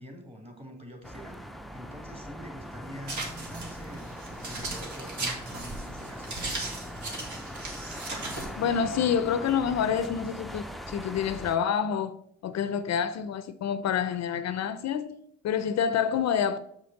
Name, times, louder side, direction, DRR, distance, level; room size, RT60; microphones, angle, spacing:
voice 1, 0.0-1.5 1.7-6.3, equal, 20° right, 2.2 m, -46 dB
sound 1, 1.0-11.6, equal, ahead, 0.5 m, -41 dB
sound 2, 3.1-8.6, right 2 dB, 70° right, 2.2 m, -37 dB
voice 2, 8.6-12.2 12.4-15.2 15.4-16.6, left 8 dB, 60° left, 0.5 m, -27 dB
7.3 x 5.1 x 4.0 m
cardioid pair, 90°, 30 cm